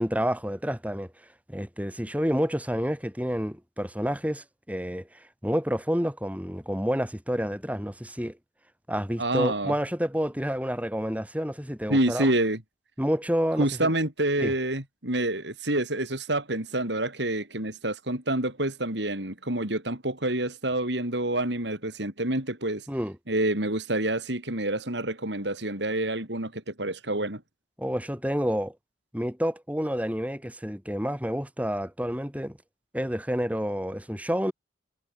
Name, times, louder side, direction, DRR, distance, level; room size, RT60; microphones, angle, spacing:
voice 1, 0.0-8.4 8.9-12.3 13.0-13.9 14.4-14.5 22.9-23.2 27.8-28.8 29.1-32.6 32.9-34.5, equal, 10° right, 5.0 m, -29 dB
voice 2, 9.2-9.7 11.9-12.6 13.6-22.8 23.3-27.4, right 1 dB, 75° right, 6.0 m, -27 dB
head